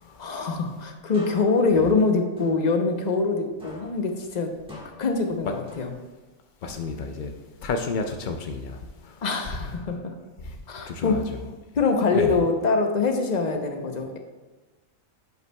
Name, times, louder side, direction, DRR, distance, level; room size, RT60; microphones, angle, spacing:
voice 1, 0.2-4.5 5.0-5.9 9.2-10.1 10.7-11.3 11.8-14.2, left 4 dB, 40° left, 4 dB, 0.7 m, -24 dB
sound 1, 1.1-3.3 3.6-6.3 6.7-8.3, left 1 dB, 5° right, 1.3 m, -48 dB
voice 2, 6.6-7.3 7.6-9.2 10.4-10.6 10.9-11.2 12.1-12.4, left 4 dB, 75° left, 5 dB, 0.4 m, -31 dB
10.5 x 5.4 x 2.2 m, 1.2 s
omnidirectional pair, 1.4 m